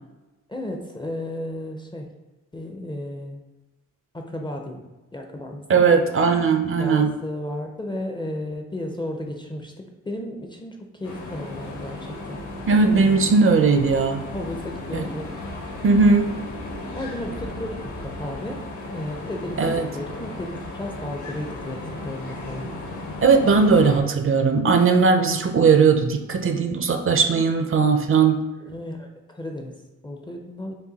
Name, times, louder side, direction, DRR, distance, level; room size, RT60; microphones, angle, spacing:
voice 1, 0.5-2.1 2.5-3.4 4.1-4.8 5.1-5.6 6.8-12.4 14.3-15.5 17.0-18.6 18.9-22.7 28.6-29.8 30.0-30.7, left 1 dB, 15° left, 2 dB, 0.4 m, -33 dB
voice 2, 5.7-7.1 12.7-14.2 14.9-15.1 15.8-16.3 19.6-19.9 23.2-28.4, right 5 dB, 40° right, 6 dB, 0.4 m, -18 dB
sound 1, 11.0-24.0, left 2 dB, 65° left, 1.1 m, -35 dB
5.3 x 2.5 x 3.9 m, 1.1 s
wide cardioid pair, 135°, 32 cm